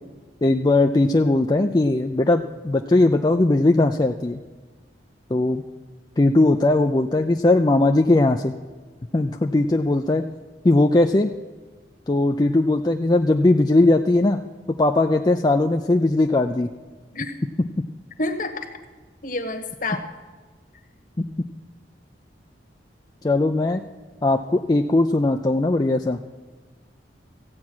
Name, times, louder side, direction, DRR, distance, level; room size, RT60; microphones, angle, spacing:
voice 1, 0.4-4.4 5.3-5.6 6.2-8.5 9.1-10.2 10.6-11.3 12.1-14.4 14.8-16.7 21.2-21.3 23.2-23.8 24.2-26.2, left 2 dB, 25° left, 4 dB, 0.4 m, -19 dB
voice 2, 18.2-18.7 19.2-20.0, left 2 dB, 50° left, 7 dB, 1.3 m, -28 dB
15.0 x 8.6 x 6.1 m, 1.4 s
head